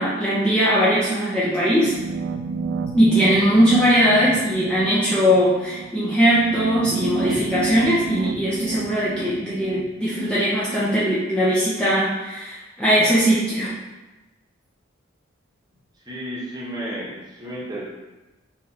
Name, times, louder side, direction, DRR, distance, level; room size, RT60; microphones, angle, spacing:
voice 1, 0.0-1.9 2.9-13.8, equal, 5° left, -9 dB, 0.6 m, -20 dB
sound 1, 1.8-10.8, right 4 dB, 75° right, 0.3 m, -31 dB
voice 2, 16.1-17.8, equal, 20° right, -6 dB, 1.0 m, -32 dB
4.6 x 3.1 x 2.8 m, 1.1 s
head